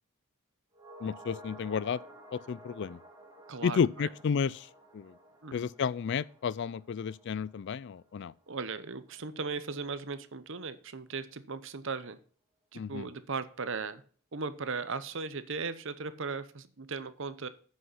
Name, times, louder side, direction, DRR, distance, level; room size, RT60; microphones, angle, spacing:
sound 1, 0.7-9.2 9.5-9.6, right 1 dB, 15° right, 2.7 m, -53 dB
voice 1, 1.0-2.0 2.3-3.0 3.6-4.7 4.9-5.1 5.5-8.3 12.7-13.1, left 6 dB, 50° left, 0.3 m, -32 dB
voice 2, 3.5-4.1 5.4-5.7 8.5-12.2 12.7-14.0 14.3-17.5, right 4 dB, 55° right, 0.9 m, -37 dB
9.5 x 6.4 x 5.6 m
head